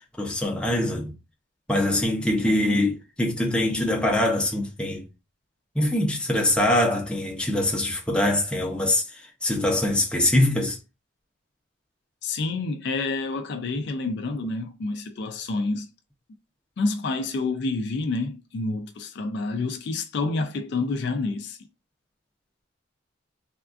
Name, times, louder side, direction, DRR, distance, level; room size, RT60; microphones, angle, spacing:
voice 1, 0.2-1.1 1.7-5.0 5.7-10.8, left 1 dB, 5° left, 0.6 m, -23 dB
voice 2, 12.2-15.9 16.8-21.6, left 3 dB, 55° left, 0.3 m, -28 dB
3.5 x 2.3 x 2.4 m
head